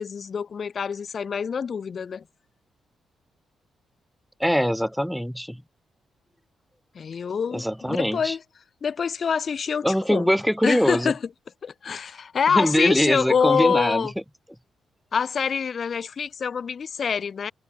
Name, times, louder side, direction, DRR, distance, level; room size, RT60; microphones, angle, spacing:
voice 1, 0.0-2.2 6.9-8.4 8.8-10.3 10.6-11.2 11.6-14.1 15.1-17.5, left 6 dB, 55° left, 5.3 m, -26 dB
voice 2, 4.4-5.6 7.5-8.3 9.8-11.1 12.5-14.1, equal, ahead, 3.0 m, -23 dB
supercardioid pair, 50°, 0 cm